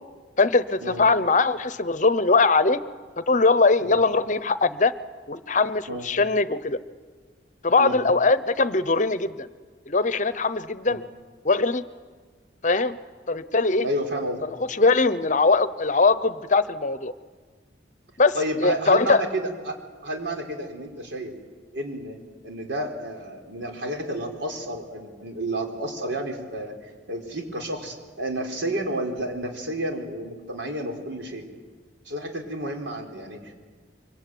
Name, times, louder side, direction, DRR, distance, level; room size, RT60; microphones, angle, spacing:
voice 1, 0.4-2.8 3.2-4.9 5.3-6.8 7.6-9.5 9.9-11.0 11.4-11.8 12.6-13.0 13.3-13.9 14.5-17.1 18.2-18.3 18.6-19.2, left 3 dB, 45° left, 14 dB, 0.9 m, -21 dB
voice 2, 13.8-14.4 18.3-19.7 20.0-21.3 21.7-31.5 32.1-33.5, right 1 dB, 90° right, 2 dB, 4.3 m, -31 dB
24.0 x 24.0 x 9.3 m, 1.5 s
head